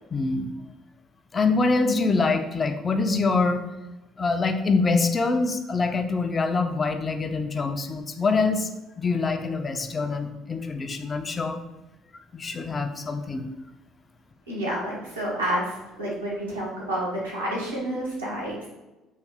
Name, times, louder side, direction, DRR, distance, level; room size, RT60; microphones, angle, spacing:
voice 1, 0.1-0.5 1.3-3.6 4.2-8.7 9.0-11.6 12.3-13.4, left 3 dB, 30° left, 7 dB, 0.4 m, -25 dB
voice 2, 14.5-15.7 16.0-18.7, right 1 dB, 85° right, -6 dB, 1.0 m, -29 dB
3.1 x 2.7 x 3.6 m, 1.0 s
figure-of-eight pair, 55°, 0 cm